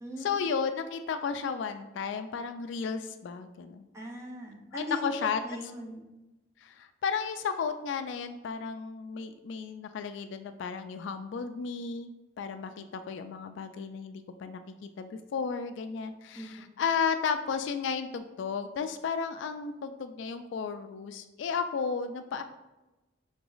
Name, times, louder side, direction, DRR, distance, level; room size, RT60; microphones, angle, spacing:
voice 1, 0.2-3.9 4.7-5.4 6.6-22.4, left 6 dB, 65° left, 9 dB, 0.3 m, -33 dB
voice 2, 3.9-6.1 16.4-16.5, left 1 dB, 15° right, 0 dB, 0.7 m, -39 dB
3.9 x 3.0 x 3.8 m, 1.0 s
head